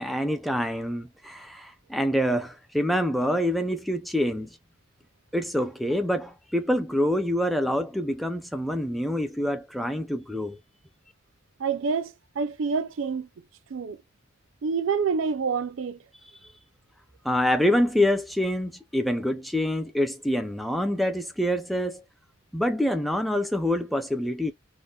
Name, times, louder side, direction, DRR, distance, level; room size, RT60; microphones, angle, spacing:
voice 1, 0.0-4.6 5.3-10.6 17.2-22.0 22.5-24.5, left 1 dB, ahead, 0.4 m, -26 dB
voice 2, 11.6-13.3 13.7-14.0 14.6-16.0, right 5 dB, 75° right, 0.5 m, -27 dB
3.7 x 2.0 x 2.2 m
head